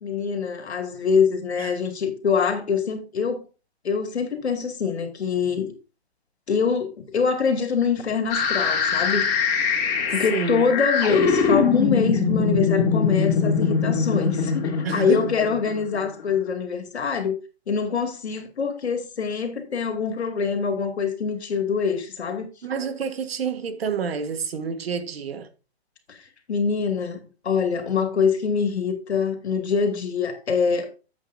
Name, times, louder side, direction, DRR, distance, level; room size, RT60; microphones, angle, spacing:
voice 1, 0.0-3.4 3.8-5.7 6.5-9.3 10.1-17.4 17.7-22.4 26.1-26.2 26.5-30.9, left 6 dB, 80° left, 2.5 m, -24 dB
sound 1, 8.3-16.2, left 5 dB, 40° left, 2.8 m, -23 dB
voice 2, 10.3-10.7 14.8-15.3 22.6-25.5, right 6 dB, 65° right, 1.4 m, -28 dB
9.8 x 8.1 x 2.7 m
hypercardioid pair, 155°, 32 cm